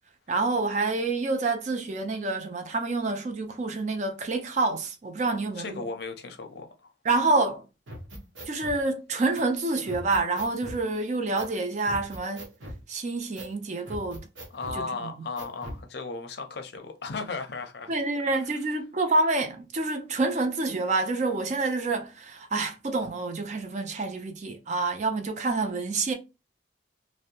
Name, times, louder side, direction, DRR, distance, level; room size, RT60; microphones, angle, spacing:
voice 1, 0.3-5.8 7.0-7.6 8.5-12.4 12.9-14.3 14.8-15.1 17.9-26.1, right 3 dB, 40° right, 0.4 m, -27 dB
voice 2, 5.3-6.9 14.5-17.9 18.3-18.6, left 4 dB, 60° left, 0.5 m, -36 dB
sound 1, 7.9-8.8 9.3-9.4 9.9-10.8 11.4-11.5 11.8-12.8 13.3-13.5 13.9-14.8 15.4-15.8, equal, 85° right, 0.8 m, -40 dB
2.5 x 2.1 x 2.8 m
head